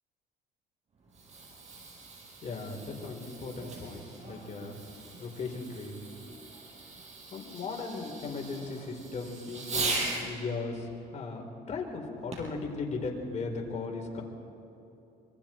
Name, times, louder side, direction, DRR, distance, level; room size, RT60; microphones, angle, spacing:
Fireworks, 1.0-10.3 12.3-12.6 13.3-13.4, right 3 dB, 40° right, 5.8 m, -39 dB
voice 1, 2.4-6.2 7.3-14.2, left 3 dB, 40° left, 1 dB, 4.2 m, -37 dB
26.0 x 24.5 x 4.5 m, 3.0 s
cardioid pair, 110°, 17 cm